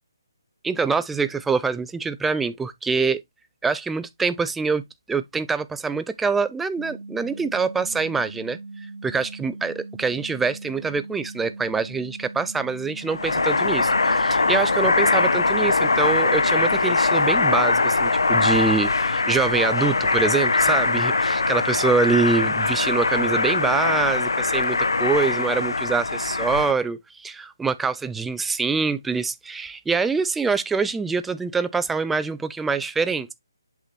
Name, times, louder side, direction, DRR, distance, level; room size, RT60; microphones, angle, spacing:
voice 1, 0.6-3.2 3.6-4.8 5.1-8.6 9.0-33.3, right 4 dB, 5° right, 0.3 m, -25 dB
sound 1, 6.8-16.8, right 3 dB, 75° right, 0.7 m, -39 dB
sound 2, 13.1-26.7, left 3 dB, 90° left, 0.7 m, -21 dB
7.9 x 3.0 x 4.1 m
hypercardioid pair, 160°, 2 cm